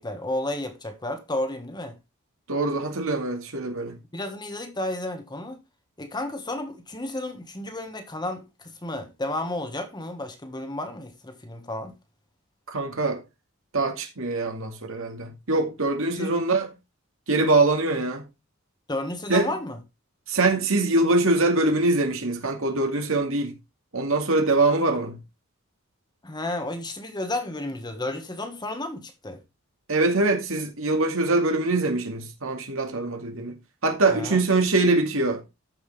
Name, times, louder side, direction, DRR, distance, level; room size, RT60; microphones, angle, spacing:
voice 1, 0.0-2.0 4.1-5.6 6.0-11.9 16.1-16.3 18.9-19.8 26.2-29.4 34.1-34.4, left 1 dB, 20° left, 1.4 m, -32 dB
voice 2, 2.5-4.0 12.7-13.2 13.7-16.7 17.3-18.3 19.3-19.5 20.3-23.5 23.9-25.2 29.9-33.6 33.8-35.4, right 2 dB, 70° right, 2.3 m, -23 dB
13.5 x 5.9 x 3.3 m
head